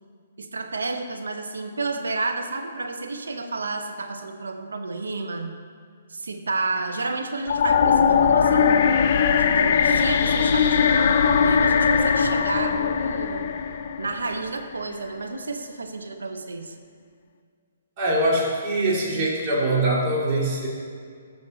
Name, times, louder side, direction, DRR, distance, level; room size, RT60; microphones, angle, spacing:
voice 1, 0.4-5.6 6.1-9.0 9.3-13.5 14.0-16.7, right 3 dB, 85° right, 6 dB, 1.0 m, -31 dB
sound 1, 7.5-14.6, left 6 dB, 50° left, 0.5 m, -20 dB
voice 2, 18.0-20.7, right 1 dB, 35° right, -4 dB, 2.7 m, -23 dB
14.0 x 6.5 x 4.1 m, 2.1 s
hypercardioid pair, 135°, 0 cm